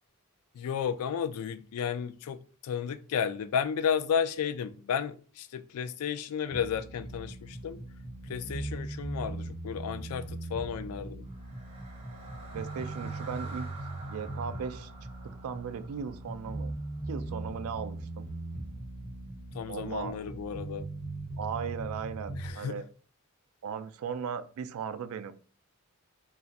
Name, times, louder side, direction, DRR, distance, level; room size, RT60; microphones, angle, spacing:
voice 1, 0.5-2.4 2.6-7.8 8.3-11.2 19.5-20.9 22.4-22.7, left 7 dB, 85° left, 0.3 m, -33 dB
sound 1, 6.5-22.5, right 2 dB, 45° left, 1.6 m, -40 dB
sound 2, 11.2-17.4, right 3 dB, 30° right, 0.6 m, -49 dB
voice 2, 12.5-13.7 14.0-14.9 15.2-16.7 17.1-18.3 19.7-20.2 21.4-22.8 23.6-25.3, right 6 dB, 70° right, 0.3 m, -37 dB
2.4 x 2.4 x 4.0 m
head